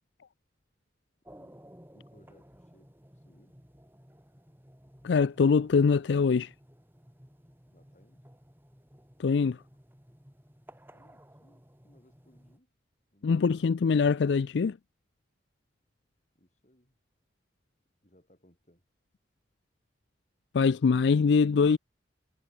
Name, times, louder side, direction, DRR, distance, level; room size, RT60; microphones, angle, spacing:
sound 1, 1.2-12.6, equal, 10° right, 4.5 m, -56 dB
voice 1, 1.4-3.6 7.7-8.2 10.9-12.7 13.1-13.7 16.3-17.0 18.0-18.8, equal, 40° left, 7.7 m, -64 dB
voice 2, 5.0-6.5 9.2-9.6 13.2-14.8 20.5-21.8, left 5 dB, 70° left, 0.4 m, -23 dB
head